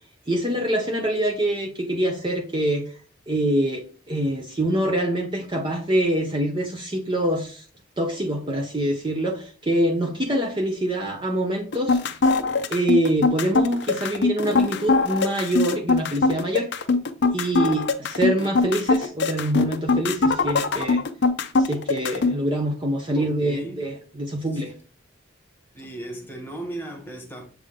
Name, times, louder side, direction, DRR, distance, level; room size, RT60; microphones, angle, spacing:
voice 1, 0.3-2.9 3.3-7.6 8.0-12.0 12.7-16.7 17.3-21.0 21.6-24.7, right 1 dB, 25° right, 0.7 m, -25 dB
sound 1, 11.7-22.3, left 3 dB, 55° left, 0.6 m, -21 dB
voice 2, 23.1-23.8 24.5-24.6 25.7-27.5, right 1 dB, 10° left, 1.2 m, -36 dB
7.5 x 3.5 x 3.5 m
head